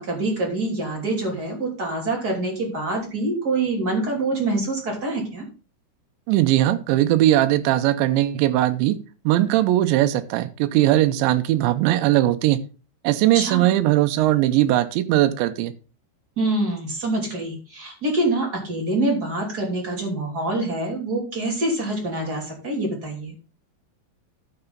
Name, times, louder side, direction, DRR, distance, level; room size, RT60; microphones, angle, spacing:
voice 1, 0.0-5.4 13.3-13.7 16.4-23.3, right 2 dB, 25° right, -1 dB, 2.7 m, -25 dB
voice 2, 6.3-9.0 9.3-12.6 13.0-15.7, right 14 dB, 90° right, 9 dB, 3.0 m, -19 dB
11.5 x 6.9 x 3.9 m, 0.34 s
omnidirectional pair, 5.1 m